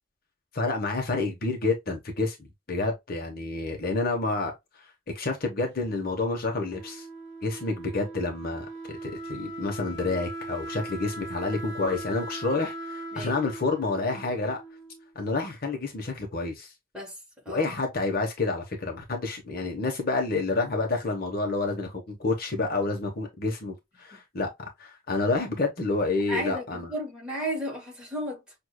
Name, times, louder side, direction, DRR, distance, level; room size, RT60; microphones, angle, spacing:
voice 1, 0.5-4.9 5.1-7.1 7.4-14.6 15.1-16.7 17.5-24.5 24.8-26.9, left 3 dB, 50° left, 1.0 m, -29 dB
Wind instrument woodwind instrument, 6.5-15.2, right 2 dB, 60° right, 1.0 m, -39 dB
voice 2, 16.9-17.7 24.1-24.2 26.3-28.5, equal, 5° right, 2.5 m, -34 dB
6.4 x 2.6 x 2.2 m
head